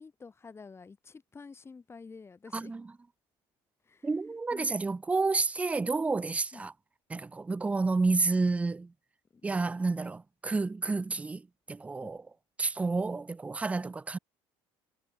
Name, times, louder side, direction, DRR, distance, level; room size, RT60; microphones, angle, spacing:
voice 1, 0.0-2.7 3.8-4.1 4.5-4.7 6.5-6.7 9.3-9.4 12.0-12.1, left 4 dB, 25° left, 3.6 m, -49 dB
voice 2, 2.5-2.9 4.0-6.7 7.1-8.9 9.4-12.3 12.6-14.2, right 3 dB, 10° right, 0.4 m, -30 dB
supercardioid pair, 105°, 11 cm